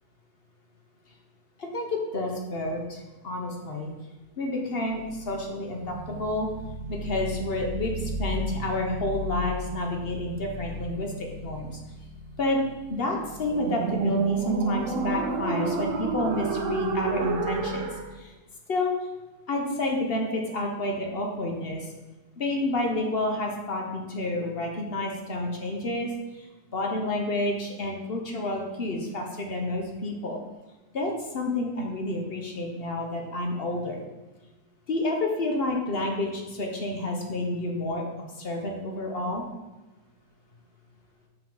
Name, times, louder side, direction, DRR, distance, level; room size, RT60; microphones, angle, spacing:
voice 1, 1.6-3.9 4.4-6.5 6.9-11.7 12.4-12.6 12.9-17.9 18.1-18.3 18.7-18.9 19.5-21.9 22.4-26.5 26.7-30.4 30.9-34.0 34.9-38.1 38.4-39.4, left 2 dB, 45° left, 1 dB, 0.9 m, -29 dB
sound 1, 4.8-18.1, right 3 dB, 60° right, 0.9 m, -32 dB
6.8 x 6.0 x 3.8 m, 1.2 s
omnidirectional pair, 1.9 m